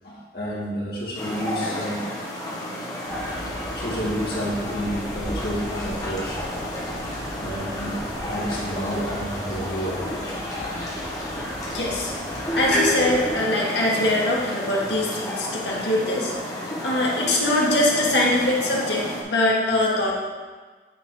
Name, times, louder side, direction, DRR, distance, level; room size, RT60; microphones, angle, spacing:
voice 1, 0.0-2.0 2.8-2.9 3.7-6.4 7.3-10.6, equal, 60° left, -5 dB, 2.0 m, -30 dB
sound 1, 1.1-19.2, left 1 dB, 20° left, 1.2 m, -32 dB
sound 2, 3.0-13.3, equal, 5° left, 2.1 m, -35 dB
voice 2, 11.7-12.1 12.5-16.3 16.8-20.1, left 1 dB, 80° left, -4 dB, 1.7 m, -22 dB
8.9 x 4.1 x 4.7 m, 1.4 s
head